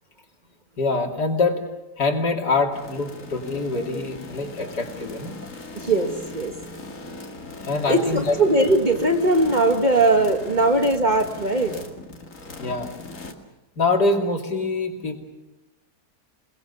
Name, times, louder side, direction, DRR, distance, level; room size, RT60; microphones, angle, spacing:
voice 1, 0.8-1.6 2.0-5.4 7.6-8.4 12.6-12.9 13.8-15.2, left 3 dB, 75° left, 2 dB, 3.4 m, -24 dB
sound 1, 2.7-13.3, left 2 dB, 50° left, 2.5 m, -39 dB
voice 2, 5.7-6.5 7.9-11.8, right 2 dB, 30° right, 5 dB, 1.4 m, -20 dB
28.5 x 20.0 x 7.0 m, 1.0 s
omnidirectional pair, 1.8 m